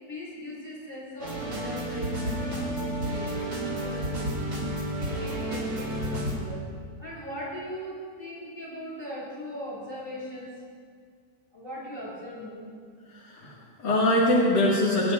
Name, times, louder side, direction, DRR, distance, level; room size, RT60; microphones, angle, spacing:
voice 1, 0.1-4.4 5.0-6.7 7.0-10.5 11.5-12.7, equal, 30° left, -8 dB, 3.5 m, -39 dB
sound 1, 1.2-6.3, right 1 dB, 80° right, 4.4 m, -31 dB
voice 2, 13.1-15.1, left 1 dB, 65° left, -7 dB, 2.4 m, -23 dB
24.5 x 10.0 x 2.4 m, 2.1 s
omnidirectional pair, 1.9 m